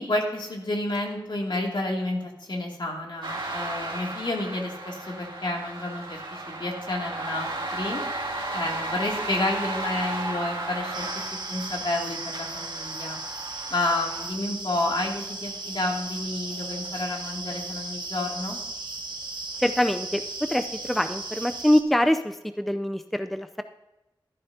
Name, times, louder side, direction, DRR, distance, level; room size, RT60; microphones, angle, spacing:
voice 1, 0.0-8.0 8.5-11.1 11.5-13.2 13.7-18.6, left 2 dB, 70° left, -1 dB, 2.6 m, -30 dB
sound 1, 3.2-14.3, right 2 dB, 80° right, 2.5 m, -34 dB
sound 2, 10.9-21.8, right 3 dB, 60° right, 1.4 m, -36 dB
voice 2, 19.6-23.6, equal, ahead, 9 dB, 0.5 m, -24 dB
14.0 x 11.5 x 2.8 m, 0.99 s
wide cardioid pair, 65°, 8 cm